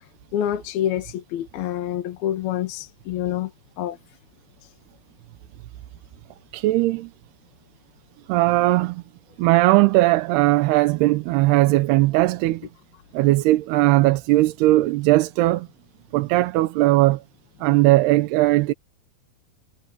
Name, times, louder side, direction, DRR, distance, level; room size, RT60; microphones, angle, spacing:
voice 1, 0.3-3.5 3.8-4.0, left 11 dB, 70° left, 3.4 m, -27 dB
voice 2, 6.5-7.1 8.3-9.0 9.4-12.7 13.1-15.7 16.1-17.2 17.6-18.7, right 18 dB, 80° right, 2.8 m, -18 dB
omnidirectional pair, 4.8 m